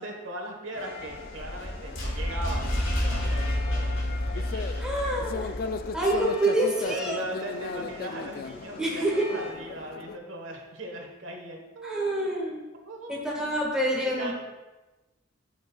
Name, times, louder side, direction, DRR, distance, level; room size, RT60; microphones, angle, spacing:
voice 1, 0.0-2.8 3.1-3.9 4.2-4.9 6.9-9.0 9.3-12.1 12.8-13.2 13.9-14.3, right 1 dB, 75° right, 1 dB, 1.2 m, -39 dB
sound 1, 0.7-10.2, left 4 dB, 50° left, 0.3 m, -38 dB
sound 2, 0.8-9.5, left 1 dB, 55° right, 2.7 m, -48 dB
sound 3, 1.0-6.2, left 1 dB, 90° left, 1.9 m, -30 dB
voice 2, 4.8-5.6 5.9-7.2 8.8-9.2 11.8-12.6 13.1-14.3, right 1 dB, 5° right, -4 dB, 1.6 m, -27 dB
12.0 x 6.1 x 2.3 m, 1.1 s
head